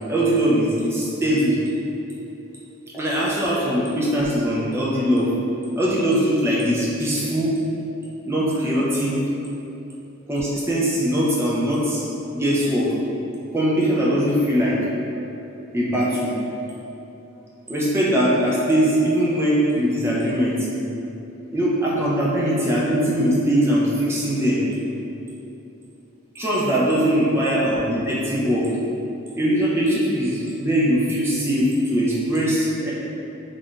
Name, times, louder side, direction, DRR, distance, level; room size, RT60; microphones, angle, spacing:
voice 1, 0.1-1.6 2.9-5.3 5.8-7.5 8.3-9.2 10.3-12.0 12.3-12.9 13.5-14.8 15.7-16.3 17.7-20.6 21.5-24.6 26.3-28.7 29.4-32.9, equal, 10° right, -6 dB, 0.4 m, -21 dB
2.5 x 2.2 x 3.7 m, 2.9 s
head